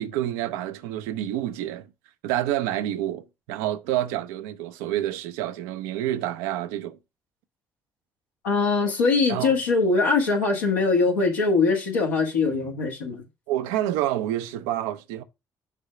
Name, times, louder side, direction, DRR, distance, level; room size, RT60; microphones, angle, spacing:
voice 1, 0.0-1.9 2.2-7.0 9.3-9.6 13.5-15.2, right 13 dB, 75° right, 0.6 m, -28 dB
voice 2, 8.4-13.2, left 4 dB, 85° left, 1.7 m, -22 dB
6.8 x 3.6 x 5.8 m
figure-of-eight pair, 45°, 9 cm